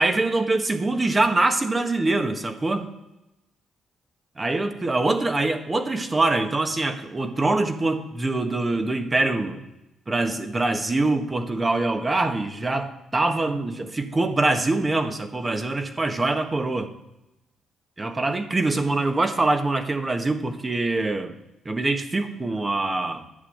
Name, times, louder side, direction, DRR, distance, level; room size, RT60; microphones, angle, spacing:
voice 1, 0.0-2.9 4.4-9.7 10.1-16.9 18.0-21.3 21.6-23.2, right 2 dB, 25° right, 6 dB, 1.5 m, -24 dB
11.0 x 6.1 x 8.9 m, 0.93 s
cardioid pair, 90°, 0 cm